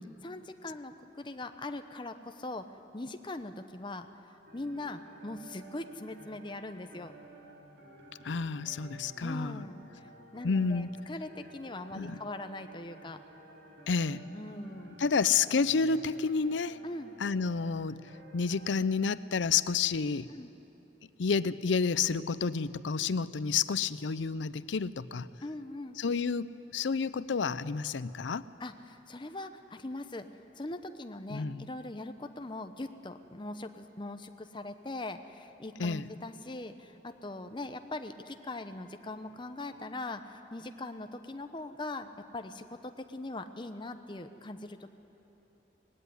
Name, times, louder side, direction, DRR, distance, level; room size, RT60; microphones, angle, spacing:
voice 1, 0.2-2.7 2.9-4.1 4.5-7.1 9.2-10.1 10.3-13.2 14.3-15.1 16.8-17.1 20.3-20.5 25.4-26.0 28.6-44.9, left 2 dB, 25° left, 8 dB, 0.8 m, -41 dB
sound 1, 4.4-18.8, right 1 dB, 60° right, 2.8 m, -53 dB
voice 2, 8.2-9.6 10.4-10.9 12.0-12.2 13.9-14.2 15.0-16.8 17.2-18.0 18.3-20.3 21.2-25.3 26.0-28.5 31.3-31.7 35.8-36.0, left 5 dB, 90° left, 16 dB, 0.5 m, -30 dB
19.5 x 16.5 x 9.6 m, 3.0 s
head